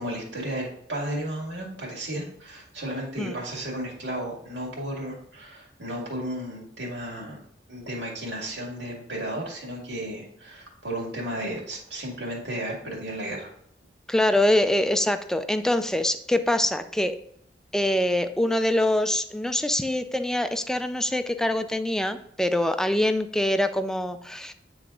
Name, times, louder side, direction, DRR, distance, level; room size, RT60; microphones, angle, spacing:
voice 1, 0.0-7.4 7.7-13.5, right 1 dB, 75° right, -3 dB, 2.2 m, -33 dB
voice 2, 14.1-17.2 17.7-24.5, left 1 dB, 5° left, 9 dB, 0.4 m, -24 dB
9.0 x 3.4 x 3.7 m, 0.69 s
head